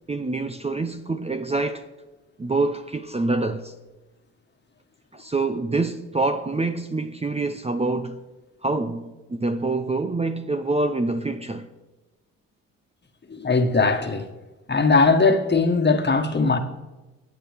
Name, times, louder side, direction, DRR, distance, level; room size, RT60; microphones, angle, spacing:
voice 1, 0.1-1.8 2.4-3.7 5.1-8.2 8.6-11.7, right 3 dB, 15° right, 0.7 m, -26 dB
voice 2, 13.3-14.2 14.7-16.6, left 4 dB, 30° left, 1.6 m, -19 dB
24.5 x 8.4 x 3.6 m
hypercardioid pair, 55°, 36 cm